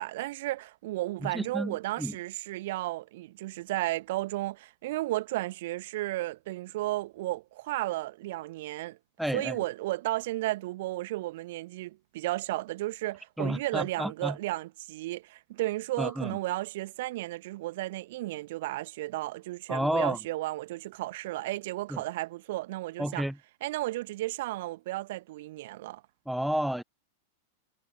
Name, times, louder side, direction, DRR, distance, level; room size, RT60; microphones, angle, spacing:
voice 1, 0.0-9.0 9.3-23.2 23.6-26.0, right 17 dB, 55° right, 1.3 m, -33 dB
voice 2, 1.2-2.1 9.2-9.6 13.4-14.4 16.0-16.4 19.7-20.2 21.9-22.0 23.0-23.3 26.3-26.8, equal, ahead, 0.7 m, -31 dB
figure-of-eight pair, 90°, 0 cm